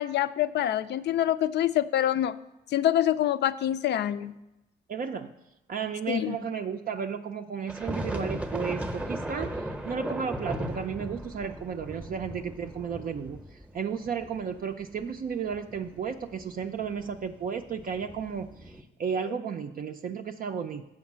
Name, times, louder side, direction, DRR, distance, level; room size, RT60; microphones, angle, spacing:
voice 1, 0.0-2.4 2.7-4.4 6.1-6.4 19.3-19.4, left 11 dB, 60° left, 13 dB, 0.4 m, -26 dB
voice 2, 4.9-5.3 5.7-9.6 9.8-20.8, right 7 dB, 45° right, 5 dB, 0.4 m, -33 dB
sound 1, 7.7-18.8, right 1 dB, 5° right, 0.7 m, -37 dB
7.1 x 5.1 x 7.3 m, 0.93 s
cardioid pair, 90°, 20 cm